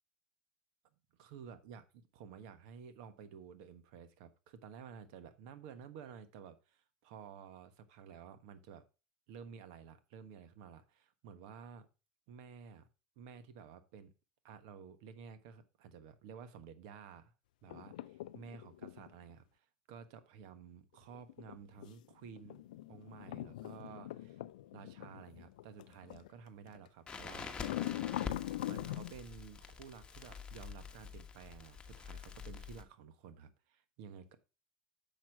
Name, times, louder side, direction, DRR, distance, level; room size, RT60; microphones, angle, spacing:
voice 1, 1.2-8.8 9.3-11.9 12.3-12.9 13.2-14.1 14.4-17.3 17.6-22.6 22.9-24.4 24.7-27.6 28.7-34.4, right 7 dB, 70° right, 1.2 m, -53 dB
sound 1, 17.7-19.1 21.1-26.3 26.7-26.9 27.6-29.1, left 14 dB, 85° left, 0.3 m, -42 dB
Crackle, 27.1-32.8, left 5 dB, 20° left, 1.3 m, -47 dB
7.2 x 6.0 x 4.6 m
supercardioid pair, 95°, 4 cm